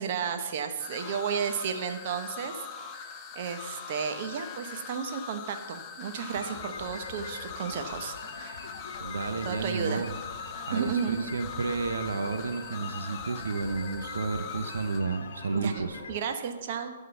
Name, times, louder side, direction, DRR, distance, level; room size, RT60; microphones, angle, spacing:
voice 1, 0.0-2.6 2.9-8.7 9.4-10.1 10.7-11.3 15.5-16.9, right 7 dB, 45° right, 6 dB, 0.8 m, -33 dB
sound 1, 0.8-15.0, left 7 dB, 25° left, 0.7 m, -42 dB
sound 2, 6.3-16.2, left 4 dB, 60° left, 1.2 m, -43 dB
voice 2, 9.0-10.1 10.7-16.0, right 4 dB, 90° right, 7 dB, 0.7 m, -32 dB
11.0 x 3.7 x 7.0 m, 1.4 s
hypercardioid pair, 150°, 0 cm